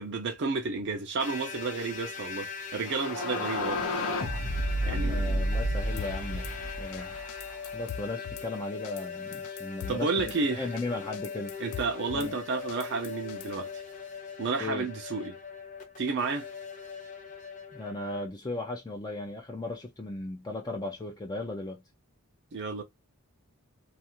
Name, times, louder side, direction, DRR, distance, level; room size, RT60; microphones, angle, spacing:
voice 1, 0.0-3.8 4.9-5.4 9.9-10.7 11.6-13.8 14.4-15.3 16.0-16.5 22.5-22.8, right 4 dB, 55° right, 0.5 m, -31 dB
sound 1, 1.2-18.3, left 6 dB, 35° left, 0.8 m, -41 dB
sound 2, 2.9-7.7, equal, 75° left, 0.7 m, -31 dB
voice 2, 4.8-6.5 6.8-7.1 7.7-11.5 12.1-12.4 14.6-14.9 17.7-21.8, left 2 dB, 20° left, 0.4 m, -36 dB
Drum kit / Snare drum, 6.0-6.5 6.9-7.0 7.3-8.5 8.8-9.1 9.3-10.4 10.8-10.9 11.1-12.3 12.7-13.6, left 9 dB, 90° left, 0.3 m, -42 dB
2.4 x 2.4 x 2.8 m
head